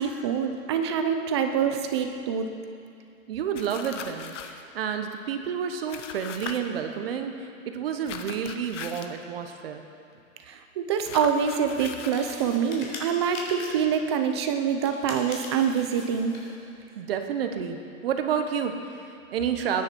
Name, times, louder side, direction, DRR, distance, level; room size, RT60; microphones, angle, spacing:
voice 1, 0.0-2.5 10.5-16.4, right 7 dB, 20° right, 6 dB, 0.5 m, -25 dB
voice 2, 3.3-9.8 17.0-19.8, right 7 dB, 45° right, 6 dB, 1.1 m, -30 dB
sound 1, 3.5-4.6 5.9-6.6 8.1-9.1 11.0-12.2, left 7 dB, 60° left, 1.2 m, -39 dB
sound 2, 11.9-13.9 14.8-16.6, left 2 dB, 90° left, 3.9 m, -41 dB
21.0 x 9.9 x 4.5 m, 2.5 s
hypercardioid pair, 155°, 42 cm